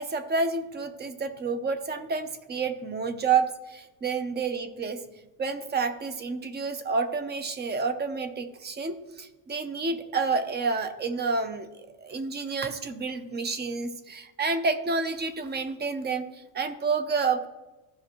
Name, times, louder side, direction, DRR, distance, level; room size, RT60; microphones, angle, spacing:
voice 1, 0.0-5.0 5.4-11.7 12.0-16.3 16.5-17.5, right 4 dB, 25° right, 10 dB, 0.6 m, -29 dB
14.0 x 5.4 x 3.0 m, 1.1 s
cardioid pair, 135°, 43 cm